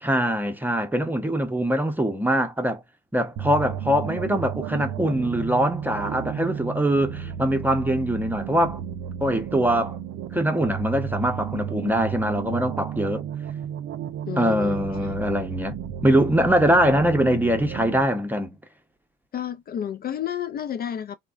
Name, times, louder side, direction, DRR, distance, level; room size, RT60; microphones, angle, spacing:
voice 1, 0.0-2.8 3.1-8.8 9.2-10.0 10.3-13.2 14.4-15.8 16.0-18.6, equal, 10° right, 0.7 m, -23 dB
sound 1, 3.4-18.0, right 9 dB, 80° right, 0.5 m, -33 dB
voice 2, 14.3-15.1 19.3-21.2, left 9 dB, 50° left, 0.4 m, -31 dB
3.2 x 2.1 x 2.4 m
cardioid pair, 90°, 20 cm